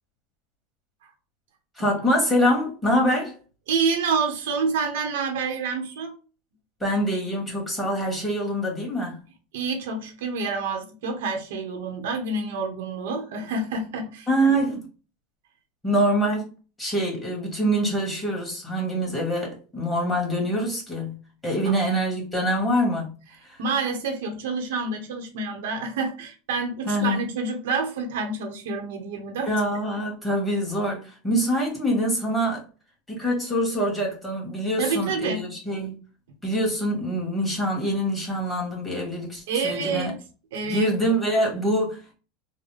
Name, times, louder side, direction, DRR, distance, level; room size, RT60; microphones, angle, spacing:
voice 1, 1.7-3.4 6.8-9.2 14.3-14.9 15.8-16.5 16.8-23.1 23.4-23.6 26.9-27.2 29.5-32.6 33.1-36.0 36.4-40.1 40.6-42.1, equal, 5° left, 1.7 m, -25 dB
voice 2, 3.7-6.2 9.5-14.3 21.7-21.8 23.6-29.5 34.8-35.5 39.5-40.2 40.5-40.9, right 4 dB, 80° right, 1.0 m, -28 dB
3.9 x 2.2 x 3.3 m
supercardioid pair, 140°, 0 cm